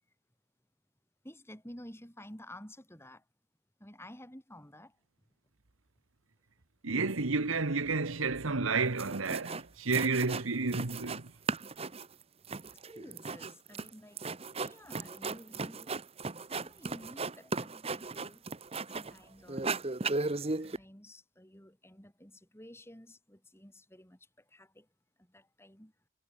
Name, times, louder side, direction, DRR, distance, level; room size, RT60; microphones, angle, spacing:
voice 1, 1.2-3.2 3.8-5.0 12.6-14.3 14.6-16.0 16.6-18.4 18.9-20.0 20.6-24.2 24.5-24.9 25.3-25.9, left 1 dB, 10° left, 5.6 m, -52 dB
voice 2, 6.8-11.3, right 4 dB, 80° right, 1.5 m, -31 dB
sound 1, 8.7-8.8 9.0-9.6 9.9-11.2 11.5-19.2 19.5-20.8, right 3 dB, 30° right, 1.0 m, -36 dB
head